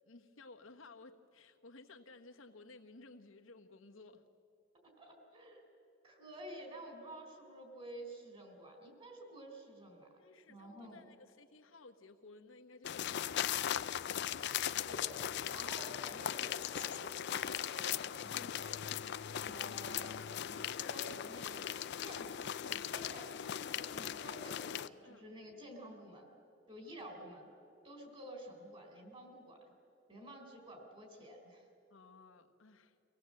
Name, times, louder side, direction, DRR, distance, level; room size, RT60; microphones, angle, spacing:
voice 1, 0.0-4.2 10.1-13.8 25.0-25.2 31.9-33.0, left 3 dB, 85° left, 5 dB, 1.3 m, -57 dB
voice 2, 4.8-5.7 6.0-10.1 10.5-11.0 14.8-18.7 19.3-21.7 22.0-23.3 23.7-26.3 26.7-27.5 27.8-29.7 30.1-31.6, right 1 dB, 30° right, 3 dB, 3.7 m, -51 dB
sound 1, 12.8-24.9, left 10 dB, 55° left, 0.4 m, -39 dB
24.5 x 17.0 x 7.7 m, 2.8 s
head